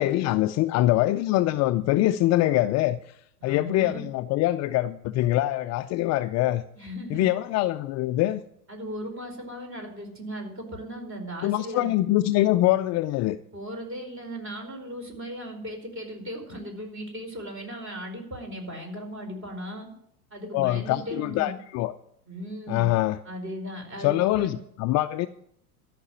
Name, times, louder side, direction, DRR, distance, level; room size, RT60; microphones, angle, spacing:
voice 1, 0.0-3.0 3.4-6.6 7.1-8.4 11.4-13.4 20.5-21.9 22.7-23.2 24.0-25.3, left 15 dB, 40° left, 10 dB, 0.5 m, -24 dB
voice 2, 3.4-4.0 6.7-7.2 8.7-11.9 13.5-19.9 20.3-21.5 22.3-22.9 23.2-24.6, equal, 30° right, 3 dB, 4.7 m, -37 dB
13.5 x 5.9 x 9.8 m, 0.73 s
hypercardioid pair, 90°, 45 cm